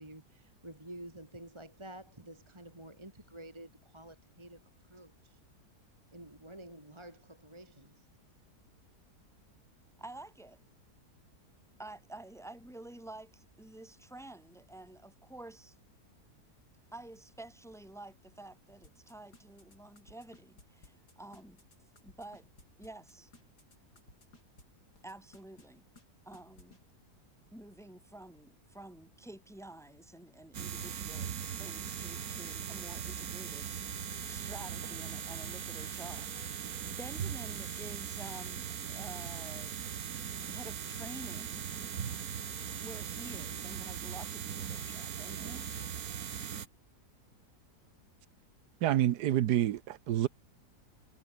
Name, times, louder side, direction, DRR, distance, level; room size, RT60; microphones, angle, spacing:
voice 1, 0.0-4.6 4.9-5.4 6.1-8.1, right 1 dB, 15° right, 2.6 m, -50 dB
voice 2, 10.0-10.6 11.8-15.7 16.9-21.6 22.0-22.5 22.8-23.3 25.0-25.8 26.2-26.8 27.5-31.3 31.6-39.8 40.5-41.7 42.8-45.7, right 1 dB, ahead, 2.3 m, -50 dB
sound 1, 18.8-24.6 24.9-25.7 26.0-26.1 26.3-26.8, left 2 dB, 80° left, 6.2 m, -58 dB
sound 2, 30.5-46.7, right 8 dB, 65° right, 1.7 m, -39 dB
voice 3, 48.8-50.3, right 12 dB, 80° right, 1.4 m, -28 dB
omnidirectional pair, 1.7 m